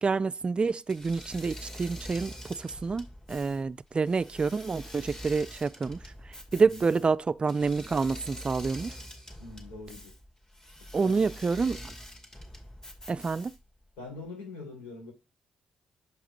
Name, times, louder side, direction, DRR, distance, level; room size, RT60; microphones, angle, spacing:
voice 1, 0.0-6.0 6.3-9.0 10.9-11.9 13.1-13.5, right 4 dB, 35° right, 0.4 m, -28 dB
Engine / Mechanisms, 0.9-13.8, equal, 15° left, 2.3 m, -45 dB
voice 2, 9.4-10.1 11.0-11.2 11.6-11.7 14.0-15.1, left 3 dB, 85° left, 4.9 m, -43 dB
6.6 x 4.9 x 5.3 m
hypercardioid pair, 50°, 3 cm